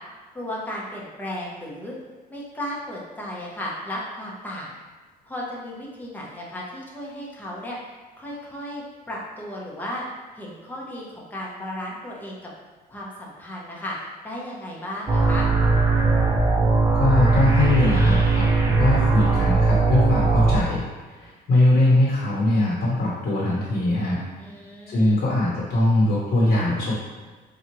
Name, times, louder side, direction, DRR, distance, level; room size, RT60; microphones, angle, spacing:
voice 1, 0.3-2.0 2.3-4.7 5.2-7.8 8.2-10.1 10.3-12.5 12.9-15.5 24.4-25.2, left 1 dB, 10° left, -4 dB, 0.9 m, -34 dB
sound 1, 15.1-20.6, right 3 dB, 20° right, 0.5 m, -19 dB
voice 2, 16.9-24.2 24.9-27.0, left 1 dB, 60° left, -5 dB, 1.0 m, -21 dB
4.3 x 2.4 x 3.0 m, 1.3 s
cardioid pair, 110°, 17 cm